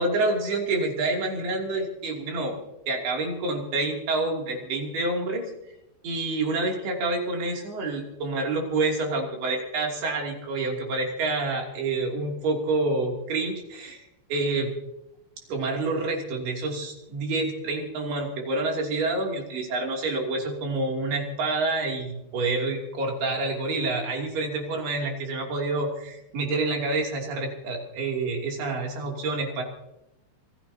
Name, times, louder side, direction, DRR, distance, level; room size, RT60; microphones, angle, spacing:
voice 1, 0.0-2.6 2.9-5.4 6.0-14.0 14.3-14.7 15.5-29.6, right 2 dB, 85° right, 0 dB, 5.0 m, -28 dB
26.5 x 16.5 x 2.9 m, 0.88 s
omnidirectional pair, 4.4 m